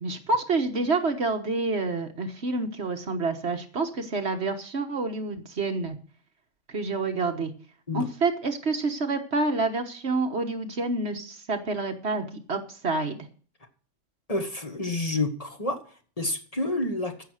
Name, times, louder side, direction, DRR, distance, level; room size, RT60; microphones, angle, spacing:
voice 1, 0.0-6.0 6.7-7.5 7.9-13.2, right 3 dB, 55° right, 6 dB, 1.5 m, -28 dB
voice 2, 14.3-15.8 16.2-17.1, left 2 dB, 30° left, 4 dB, 1.7 m, -28 dB
14.5 x 6.6 x 6.4 m, 0.42 s
omnidirectional pair, 1.3 m